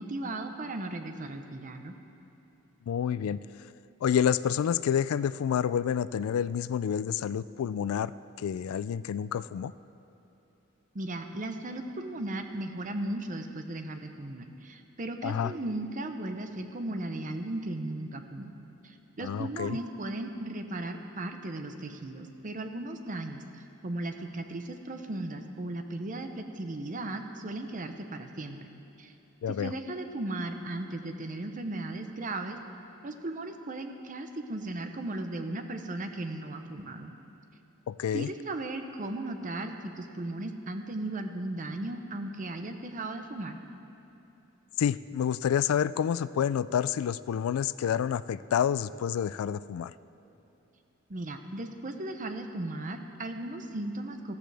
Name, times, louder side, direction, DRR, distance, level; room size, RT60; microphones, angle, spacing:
voice 1, 0.0-1.9 10.9-18.5 18.8-28.7 29.0-29.1 29.5-32.6 33.0-37.1 38.1-43.6 51.1-54.3, right 2 dB, 40° right, 6 dB, 0.8 m, -36 dB
voice 2, 2.9-3.4 4.0-8.1 8.4-9.7 15.2-15.5 19.2-19.8 29.4-29.7 37.9-38.3 44.8-49.9, left 8 dB, 85° left, 17 dB, 0.3 m, -28 dB
15.5 x 14.0 x 3.4 m, 3.0 s
head